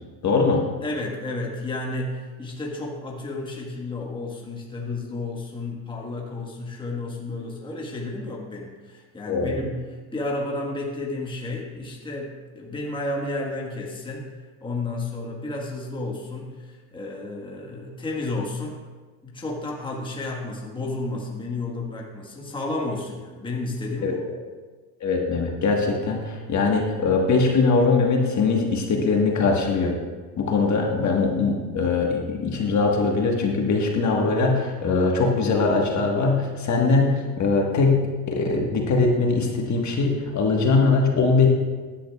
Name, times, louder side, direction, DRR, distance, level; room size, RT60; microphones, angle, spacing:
voice 1, 0.2-0.6 9.3-9.6 24.0-24.1 25.0-29.9 30.4-38.0 38.3-41.5, left 4 dB, 35° left, 0 dB, 1.4 m, -21 dB
voice 2, 0.8-14.3 14.6-18.8 19.2-24.2, left 2 dB, 10° left, -1 dB, 1.4 m, -32 dB
14.5 x 10.5 x 2.3 m, 1.4 s
cardioid pair, 120°, 47 cm